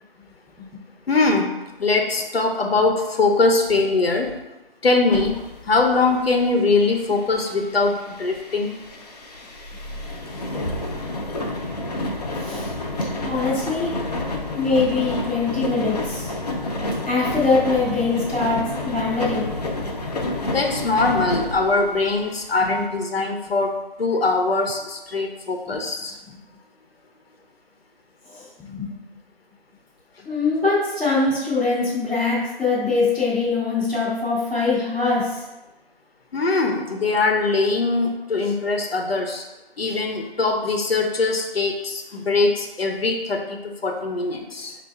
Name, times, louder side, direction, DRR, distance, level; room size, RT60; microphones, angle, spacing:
voice 1, 1.1-4.3 4.8-5.4 5.7-8.7 20.5-23.7 24.0-26.1 36.3-39.4 39.8-44.8, left 3 dB, 85° left, 3 dB, 0.9 m, -22 dB
sound 1, 5.1-22.7, left 1 dB, 45° left, 0.7 m, -30 dB
voice 2, 12.3-12.7 13.2-13.9 14.5-16.3 17.1-19.5 22.6-22.8 25.7-25.8 28.2-28.9 30.2-35.4, left 3 dB, ahead, -20 dB, 0.7 m, -23 dB
5.3 x 2.7 x 3.5 m, 1.0 s
figure-of-eight pair, 165°, 29 cm